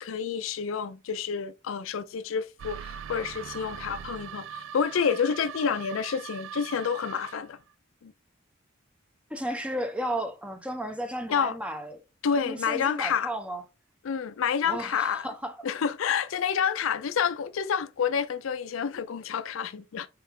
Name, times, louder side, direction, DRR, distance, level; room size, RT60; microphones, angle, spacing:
voice 1, 0.0-7.6 8.0-8.1 11.3-11.6 12.2-13.3 14.0-15.3 15.6-20.1, left 7 dB, 75° left, 0.4 m, -29 dB
sound 1, 2.6-7.6, right 8 dB, 65° right, 0.3 m, -41 dB
voice 2, 9.3-12.0 12.4-13.6 14.6-15.6, right 1 dB, 5° right, 0.6 m, -33 dB
4.5 x 3.3 x 3.5 m
head